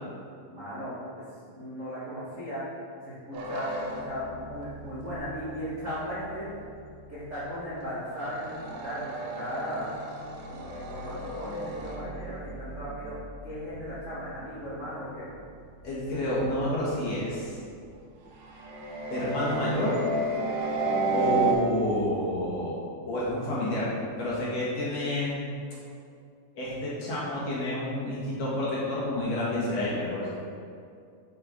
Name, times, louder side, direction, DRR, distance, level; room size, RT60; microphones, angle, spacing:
voice 1, 0.5-0.9 1.5-2.6 3.0-6.5 7.1-9.9 10.5-13.2 13.4-15.3, equal, 40° right, -12 dB, 1.0 m, -37 dB
sound 1, 3.3-7.8 8.1-17.7 18.3-21.5, right 2 dB, 90° right, 2.8 m, -34 dB
voice 2, 15.8-17.6 19.1-20.0 21.1-22.8 23.0-23.9 24.2-25.4 26.5-30.4, left 1 dB, 55° left, -8 dB, 2.4 m, -29 dB
6.8 x 6.5 x 3.7 m, 2.3 s
omnidirectional pair, 3.9 m